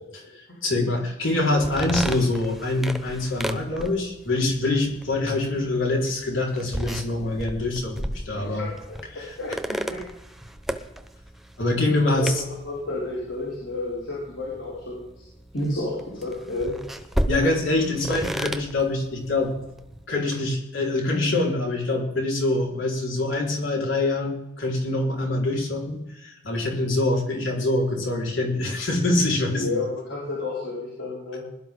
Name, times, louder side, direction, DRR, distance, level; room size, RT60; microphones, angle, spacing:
voice 1, 0.1-8.6 9.1-9.3 11.6-12.4 17.3-19.5 20.1-29.8, left 2 dB, 85° left, -1 dB, 4.8 m, -25 dB
sound 1, 1.5-20.1, equal, ahead, 0.9 m, -35 dB
voice 2, 8.4-10.0 12.0-15.3 15.5-16.8 29.5-31.4, left 2 dB, 70° left, -6 dB, 5.9 m, -31 dB
21.5 x 12.5 x 3.9 m, 0.92 s
head